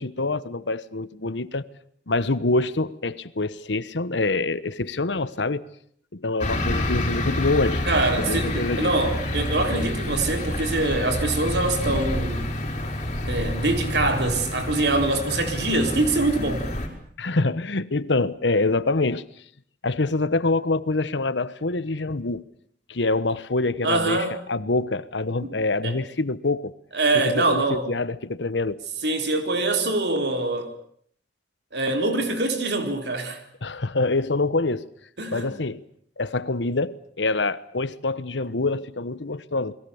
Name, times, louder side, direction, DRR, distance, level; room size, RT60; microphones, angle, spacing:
voice 1, 0.0-1.7 2.1-5.7 6.1-7.8 8.2-8.9 17.2-19.2 19.8-22.5 22.9-26.7 27.1-28.8 33.6-34.9 35.3-35.8 36.2-39.7, left 3 dB, 85° left, 1.2 m, -25 dB
sound 1, 6.4-16.9, left 1 dB, 40° left, 5.8 m, -28 dB
voice 2, 7.9-12.5 13.3-16.7 23.8-24.4 25.4-25.5 25.8-25.9 26.9-27.8 29.0-30.7 31.7-33.4 35.2-35.5, right 2 dB, 65° right, 4.2 m, -24 dB
29.5 x 21.5 x 7.2 m
head